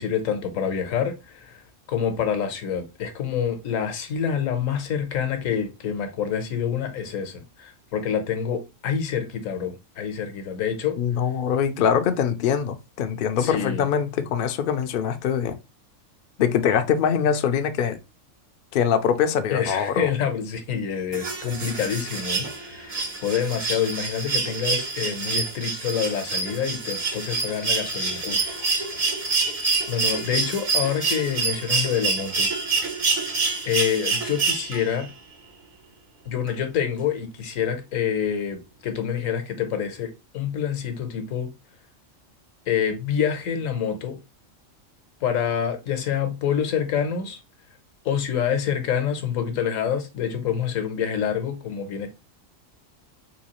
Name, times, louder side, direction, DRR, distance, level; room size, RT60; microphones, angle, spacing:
voice 1, 0.0-1.6 1.9-11.0 13.4-13.8 19.5-28.6 29.9-32.5 33.6-35.1 36.3-41.5 42.7-44.2 45.2-47.4 48.0-52.1, left 8 dB, 80° left, 1.2 m, -27 dB
voice 2, 11.0-15.6 16.4-18.0 18.7-20.1, left 8 dB, 65° left, 0.5 m, -23 dB
sound 1, 21.1-35.0 36.5-36.6, right 4 dB, 45° right, 0.5 m, -27 dB
3.9 x 2.7 x 2.9 m
omnidirectional pair, 1.4 m